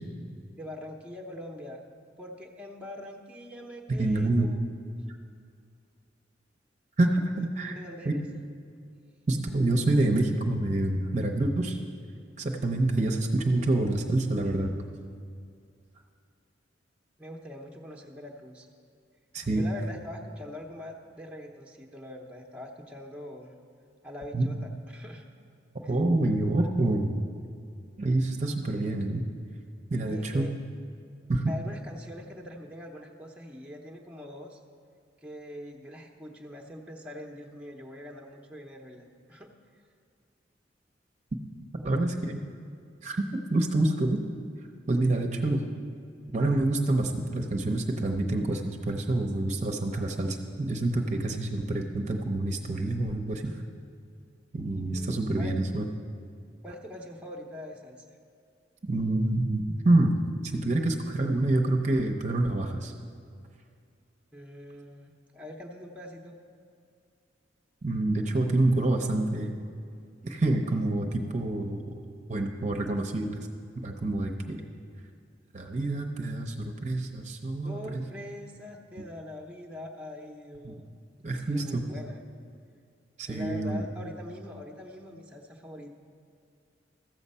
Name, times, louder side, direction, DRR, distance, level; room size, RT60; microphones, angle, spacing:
voice 1, 0.6-1.8 2.2-4.7 7.4-8.2 17.2-18.7 19.5-23.5 24.0-25.2 25.8-25.9 30.0-30.5 31.5-34.6 35.2-39.5 54.9-55.6 56.6-58.0 64.3-66.4 77.6-80.9 81.3-82.2 83.3-86.0, left 1 dB, 5° right, 0 dB, 0.8 m, -43 dB
voice 2, 4.0-4.5 7.0-7.7 8.1-8.2 9.3-11.8 12.4-14.7 19.3-19.6 24.3-24.5 25.9-27.1 28.0-29.2 29.9-30.5 31.3-31.5 41.7-42.4 43.0-44.2 44.9-45.6 46.3-53.6 54.5-55.9 58.9-60.1 60.4-62.9 67.8-69.6 70.2-71.8 72.3-73.4 73.8-74.6 75.5-78.0 79.0-79.1 80.6-80.7 81.2-81.8 83.2-83.8, right 2 dB, 40° right, 3 dB, 0.7 m, -27 dB
14.0 x 7.2 x 5.5 m, 2.3 s
head